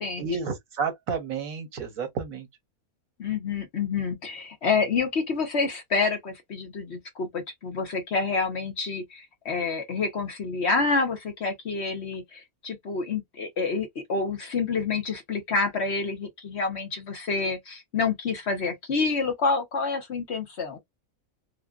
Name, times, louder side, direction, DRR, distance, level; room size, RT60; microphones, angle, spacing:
voice 1, 0.2-2.5, right 5 dB, 70° right, 1.3 m, -31 dB
voice 2, 3.2-20.8, left 4 dB, 50° left, 1.1 m, -28 dB
3.6 x 2.2 x 2.4 m
omnidirectional pair, 1.5 m